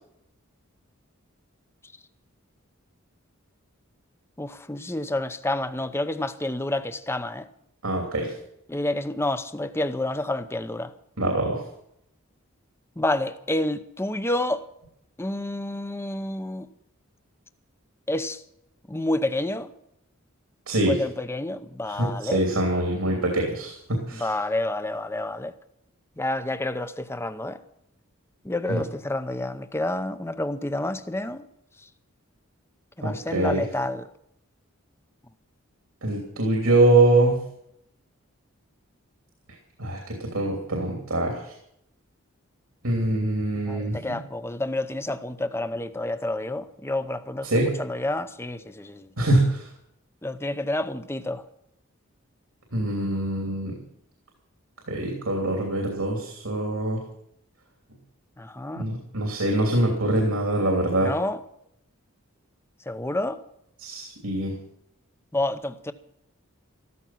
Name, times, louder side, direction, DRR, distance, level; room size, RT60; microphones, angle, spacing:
voice 1, 4.4-7.5 8.7-10.9 13.0-14.6 15.2-16.7 18.1-18.4 18.9-19.7 20.9-22.4 23.0-23.2 24.2-25.5 26.2-27.6 28.4-31.4 33.0-34.1 43.7-47.5 47.8-49.1 50.2-51.4 58.4-58.8 61.0-61.4 62.9-63.4 65.3-65.9, left 1 dB, 10° left, 0.7 m, -29 dB
voice 2, 7.8-8.3 11.2-11.6 20.7-21.0 21.8-24.3 28.7-28.8 33.0-33.6 36.0-37.4 39.8-41.5 42.8-44.2 47.4-47.7 49.2-49.7 52.7-53.8 54.9-57.0 58.8-61.1 63.8-64.5, right 2 dB, 85° right, 3.0 m, -24 dB
14.0 x 14.0 x 5.8 m
head